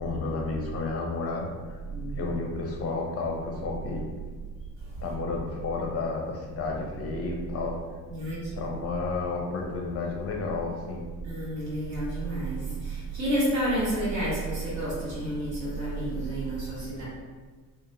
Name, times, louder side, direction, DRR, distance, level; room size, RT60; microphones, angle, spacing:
voice 1, 0.0-1.5 2.2-4.1 5.0-7.8 8.5-11.1, left 4 dB, 30° left, 0 dB, 0.5 m, -31 dB
voice 2, 11.2-17.0, right 1 dB, 75° right, -7 dB, 1.2 m, -30 dB
3.0 x 2.1 x 2.6 m, 1.4 s
figure-of-eight pair, 55°, 50 cm